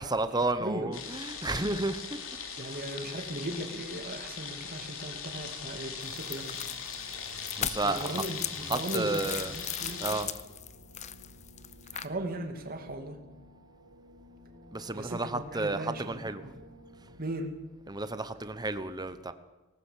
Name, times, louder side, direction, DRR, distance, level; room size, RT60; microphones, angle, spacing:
voice 1, 0.0-2.2 7.6-8.2 8.7-9.5 10.0-10.3 14.7-16.4 17.9-19.3, right 2 dB, 20° right, 1.1 m, -32 dB
voice 2, 0.6-0.9 1.4-1.8 2.6-6.6 7.8-10.2 11.9-13.2 14.9-16.5 17.2-17.6, right 1 dB, 40° right, 2.4 m, -38 dB
sound 1, 0.9-10.2, left 6 dB, 65° left, 3.1 m, -40 dB
sound 2, 5.3-17.3, right 1 dB, 75° right, 5.0 m, -54 dB
sound 3, 6.0-12.1, left 10 dB, 30° left, 0.7 m, -38 dB
20.0 x 18.5 x 7.5 m
head